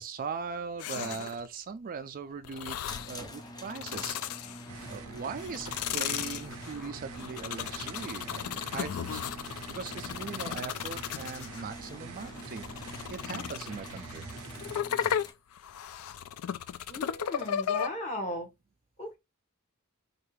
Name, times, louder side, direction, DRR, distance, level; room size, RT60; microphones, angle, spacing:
voice 1, 0.0-2.8 3.0-4.2 4.9-9.2 9.7-12.7 13.1-14.3, right 5 dB, 40° right, 0.4 m, -39 dB
sound 1, 0.8-1.5 2.4-3.2 3.6-4.9 5.4-11.6 12.2-17.9, left 9 dB, 90° left, 0.3 m, -35 dB
sound 2, 2.8-15.3, left 1 dB, 20° left, 0.5 m, -47 dB
sound 3, 4.7-14.8, right 4 dB, 85° right, 0.6 m, -46 dB
voice 2, 16.9-18.5 19.0-19.2, equal, 35° left, 1.5 m, -36 dB
4.5 x 2.4 x 3.2 m
head